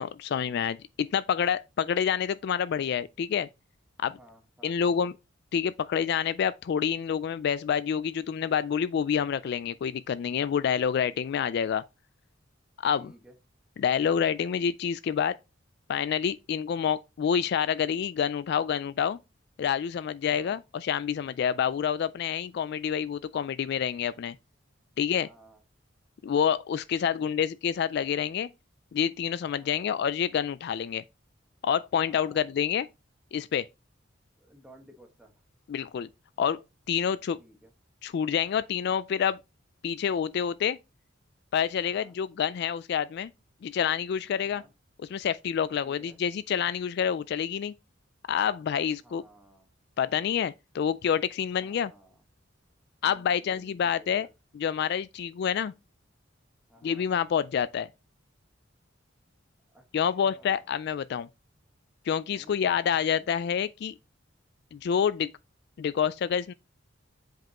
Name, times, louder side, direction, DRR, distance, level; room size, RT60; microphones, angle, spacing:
voice 1, 0.0-3.5 4.0-4.2 4.6-5.1 5.5-11.8 12.8-13.1 13.8-15.4 15.9-19.2 19.6-24.4 25.0-25.3 26.2-28.5 28.9-31.0 31.6-32.9 33.3-33.7 35.7-36.1 36.4-36.6 36.9-37.4 38.0-39.4 39.8-40.8 41.5-43.3 43.6-44.6 45.1-47.7 48.3-49.2 50.0-51.9 53.0-54.3 54.5-55.7 56.8-57.9 59.9-61.3 62.1-63.9 64.7-65.3 65.8-66.5, left 8 dB, 60° left, 0.3 m, -28 dB
voice 2, 4.1-5.1 13.0-13.4 20.2-20.6 25.1-25.6 27.1-27.4 29.5-29.9 32.0-32.4 34.4-35.3 37.4-37.7 41.8-42.2 44.4-44.7 45.8-46.2 49.0-49.7 51.6-52.2 53.0-54.3 56.7-57.1 59.7-59.8 60.2-60.7 62.3-63.3, right 1 dB, 5° right, 1.4 m, -55 dB
7.5 x 5.3 x 2.9 m
head